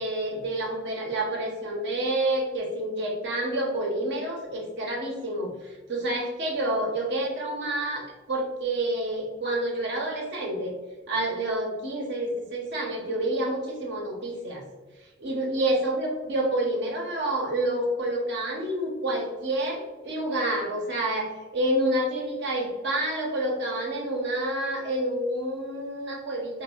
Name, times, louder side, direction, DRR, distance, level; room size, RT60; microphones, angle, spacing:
voice 1, 0.0-10.7 11.1-14.6 15.2-26.6, right 1 dB, 60° right, -1 dB, 0.8 m, -28 dB
4.2 x 2.3 x 2.3 m, 1.2 s
head